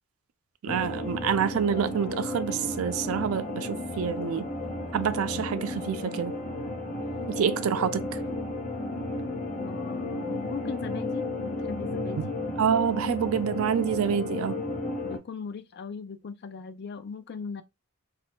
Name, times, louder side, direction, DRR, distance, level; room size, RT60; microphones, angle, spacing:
voice 1, 0.6-4.5 4.9-6.4 7.3-8.2 12.2-12.3 12.6-14.6, right 7 dB, 75° right, 0.3 m, -27 dB
sound 1, 0.7-15.2, left 2 dB, 30° left, 1.0 m, -33 dB
voice 2, 9.6-12.4 15.0-17.6, left 5 dB, 50° left, 0.4 m, -39 dB
2.6 x 2.3 x 3.4 m
head